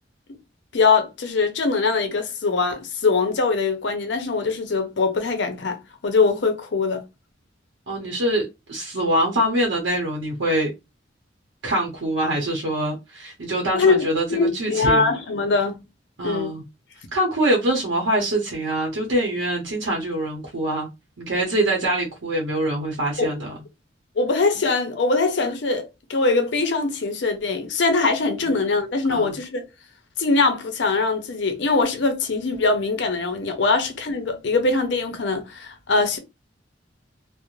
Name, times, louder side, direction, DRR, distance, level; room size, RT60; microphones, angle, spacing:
voice 1, 0.7-7.0 13.7-14.0 14.3-15.8 16.2-16.6 23.2-23.3 24.2-29.6 30.2-36.2, left 3 dB, 65° left, 0.6 m, -22 dB
voice 2, 7.9-10.7 11.6-15.1 16.2-16.6 17.1-20.9 21.2-23.6 28.4-28.5 29.1-29.3, right 1 dB, 85° right, 0.7 m, -24 dB
2.4 x 2.0 x 3.0 m
head